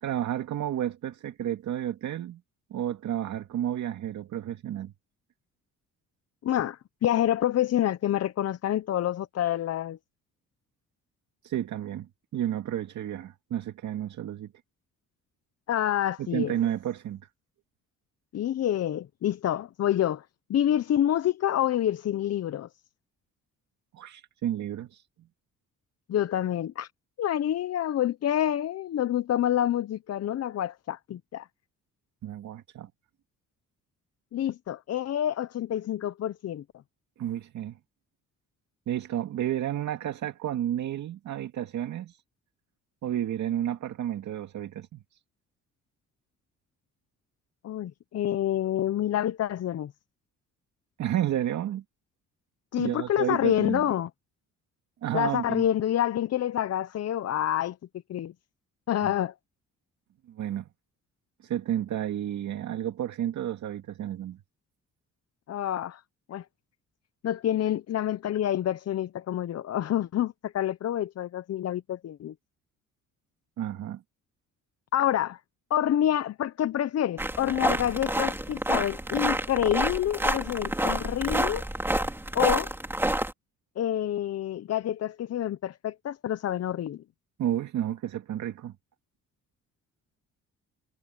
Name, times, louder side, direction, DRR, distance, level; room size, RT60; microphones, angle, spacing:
voice 1, 0.0-2.4 2.7-4.9 11.4-14.5 16.2-17.2 23.9-25.1 32.2-32.9 37.2-37.8 38.9-42.2 43.0-45.2 51.0-51.8 52.8-53.8 55.0-55.7 59.0-59.1 60.3-60.7 61.4-64.4 73.6-74.0 87.4-88.8, right 11 dB, 70° right, 2.3 m, -31 dB
voice 2, 6.4-10.0 15.7-16.5 18.3-20.2 20.5-22.7 26.1-26.9 27.2-31.5 34.3-36.6 47.6-49.9 52.7-54.1 55.1-57.8 58.1-58.3 58.9-59.3 65.5-66.0 66.3-66.4 67.2-72.3 74.9-75.4 75.7-81.6 82.3-82.7 83.8-87.0, left 11 dB, 55° left, 0.8 m, -27 dB
sound 1, 77.2-83.3, right 1 dB, 5° right, 3.4 m, -28 dB
cardioid pair, 90°, 30 cm